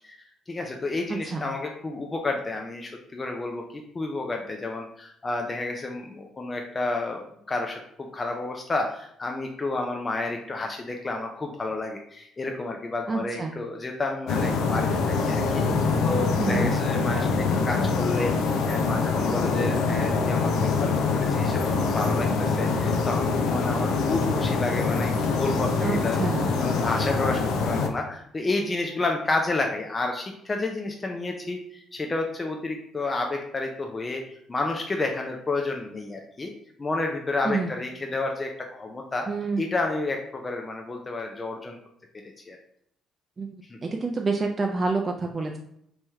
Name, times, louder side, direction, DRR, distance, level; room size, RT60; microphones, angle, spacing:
voice 1, 0.5-7.8 8.1-15.6 16.0-18.3 18.7-20.9 21.2-26.2 26.6-36.5 36.8-39.3 39.6-41.8 42.5-42.6 43.7-43.8, left 2 dB, 30° left, 2 dB, 0.5 m, -30 dB
voice 2, 1.1-1.5 13.1-13.5 16.4-16.7 25.8-26.5 37.4-37.7 39.3-39.6 43.4-43.5 43.8-45.6, right 4 dB, 35° right, 2 dB, 0.4 m, -28 dB
sound 1, 14.3-27.9, left 4 dB, 75° left, 0.4 m, -24 dB
3.0 x 3.0 x 3.5 m, 0.72 s
supercardioid pair, 70°, 0 cm